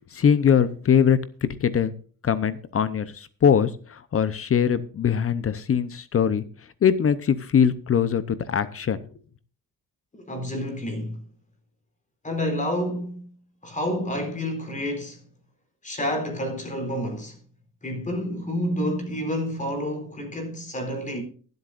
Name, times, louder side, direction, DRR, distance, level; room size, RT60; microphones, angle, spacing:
voice 1, 0.1-1.9 2.2-6.4 6.8-9.0, left 8 dB, 45° left, 0.8 m, -22 dB
voice 2, 10.1-11.2 12.2-13.3 13.6-15.2 15.8-17.4 17.8-21.2, equal, 25° left, 4.1 m, -29 dB
23.0 x 8.0 x 2.5 m
cardioid pair, 140°, 33 cm